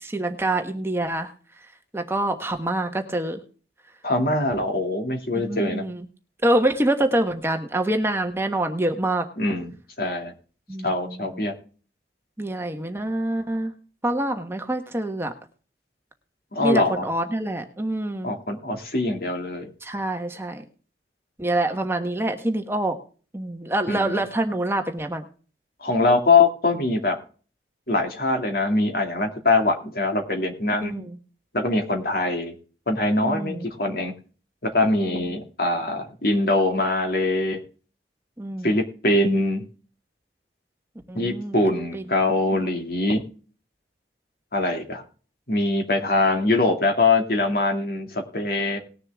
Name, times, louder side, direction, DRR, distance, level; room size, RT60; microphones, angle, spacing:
voice 1, 0.0-1.3 1.9-3.4 5.3-6.0 6.4-9.2 10.7-11.4 12.4-13.7 14.0-15.3 16.6-18.3 19.8-20.6 21.4-23.0 23.3-25.3 30.8-31.2 33.2-33.7 34.9-35.4 38.4-38.7 41.1-41.6 41.9-42.0 42.5-42.8, right 1 dB, 15° right, 5 dB, 1.2 m, -26 dB
voice 2, 4.0-5.8 9.4-9.7 10.0-10.3 10.8-11.5 16.5-17.1 18.2-19.6 23.9-24.2 25.8-27.1 27.9-30.9 31.5-32.5 32.9-34.1 34.6-37.6 38.6-39.6 41.1-43.2 44.5-45.0 45.5-48.8, left 2 dB, 55° left, 4 dB, 2.3 m, -23 dB
19.5 x 6.8 x 3.5 m, 0.39 s
head